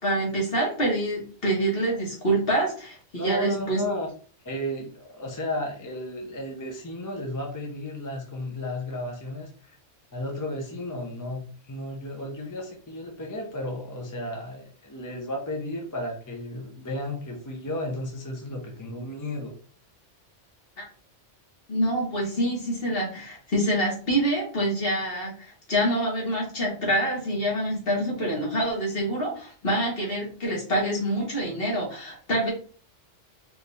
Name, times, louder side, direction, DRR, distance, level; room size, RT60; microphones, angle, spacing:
voice 1, 0.0-3.8 20.8-20.9 21.7-32.5, right 1 dB, 50° left, -3 dB, 2.0 m, -26 dB
voice 2, 3.1-4.1 4.4-9.8 10.1-19.5, left 1 dB, 20° left, 0 dB, 0.7 m, -33 dB
4.8 x 2.6 x 3.3 m, 0.41 s
omnidirectional pair, 1.2 m